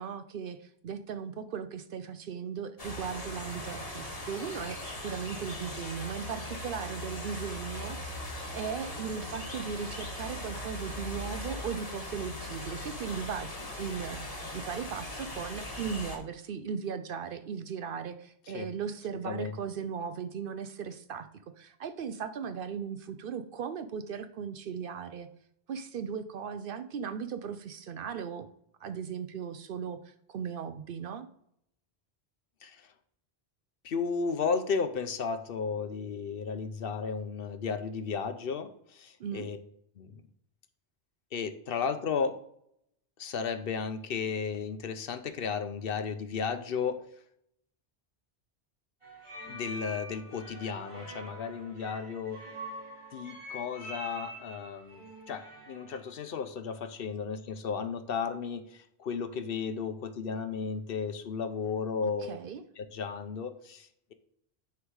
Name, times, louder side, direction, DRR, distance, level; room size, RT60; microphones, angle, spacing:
voice 1, 0.0-13.5 13.8-21.3 21.6-25.3 25.7-28.5 28.8-31.3 39.2-39.5 62.0-62.6, right 7 dB, 65° right, 10 dB, 0.7 m, -37 dB
sound 1, 2.8-16.2, left 1 dB, 35° left, 1.5 m, -39 dB
voice 2, 19.3-19.6 32.6-32.9 33.8-39.6 40.0-40.2 41.3-42.4 43.2-47.0 49.4-52.4 53.1-62.4 62.8-64.1, left 5 dB, 60° left, 10 dB, 0.8 m, -34 dB
sound 2, 49.0-55.9, right 1 dB, 25° right, 2.4 m, -45 dB
9.8 x 3.6 x 4.7 m, 0.70 s
omnidirectional pair, 1.1 m